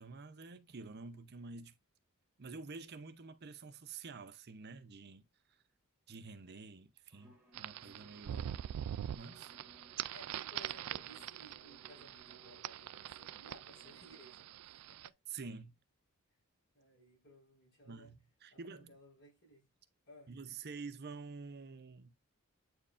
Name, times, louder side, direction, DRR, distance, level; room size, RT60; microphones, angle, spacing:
voice 1, 0.0-1.8 2.4-5.3 6.1-8.4 9.1-9.5 15.3-15.8 17.9-18.9 20.3-22.1, right 4 dB, 45° right, 0.6 m, -48 dB
Bowed string instrument, 7.1-14.5, right 2 dB, 5° right, 2.4 m, -64 dB
sound 1, 7.3-9.9 10.4-13.1, left 1 dB, 90° left, 3.6 m, -73 dB
sound 2, 7.5-15.1, right 11 dB, 85° right, 0.3 m, -44 dB
voice 2, 8.3-8.6 10.1-15.2 16.7-18.1 18.5-19.7 20.1-20.3, equal, 55° left, 5.0 m, -59 dB
8.5 x 4.5 x 2.5 m
head